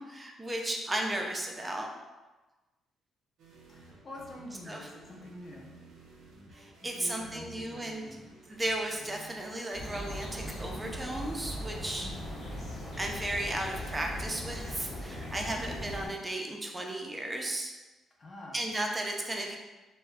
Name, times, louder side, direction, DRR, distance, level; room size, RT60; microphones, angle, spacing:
voice 1, 0.1-1.9 4.7-4.9 6.5-8.0 8.5-12.1 13.0-17.7 18.5-19.6, right 1 dB, 20° right, 1 dB, 0.4 m, -35 dB
sound 1, 3.4-14.9, right 2 dB, 85° right, 0.5 m, -55 dB
voice 2, 3.7-5.7 6.8-8.2 12.0-12.4 15.6-15.7 18.2-18.6, left 1 dB, 40° left, -2 dB, 0.6 m, -47 dB
sound 2, 9.7-16.1, equal, 55° left, 0.9 m, -39 dB
2.2 x 2.1 x 3.4 m, 1.1 s
cardioid pair, 90°, 0 cm